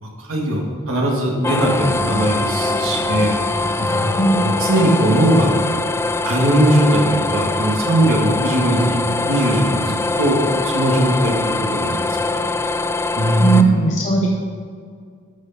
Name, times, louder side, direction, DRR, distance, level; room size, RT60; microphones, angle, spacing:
voice 1, 0.0-3.4 3.8-5.5 6.2-9.0 9.3-12.5 13.2-13.8, right 1 dB, 75° right, -1 dB, 1.9 m, -19 dB
sound 1, 1.4-13.6, left 3 dB, 10° left, 0.3 m, -22 dB
voice 2, 13.4-14.3, right 3 dB, 35° left, -1 dB, 0.8 m, -17 dB
12.5 x 6.5 x 4.2 m, 2.1 s
head